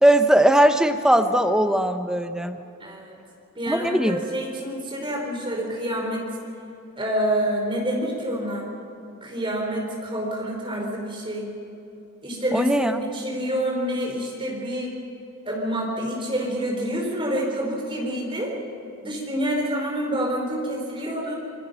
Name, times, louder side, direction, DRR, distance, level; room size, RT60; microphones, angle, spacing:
voice 1, 0.0-2.6 3.7-4.2 12.5-13.0, right 1 dB, 5° right, 6 dB, 1.0 m, -19 dB
voice 2, 2.8-3.1 3.5-6.3 7.0-8.7 9.2-11.5 12.2-14.9 15.4-18.5 19.0-21.4, right 1 dB, 25° right, 0 dB, 4.7 m, -27 dB
26.5 x 21.5 x 5.8 m, 2.7 s
head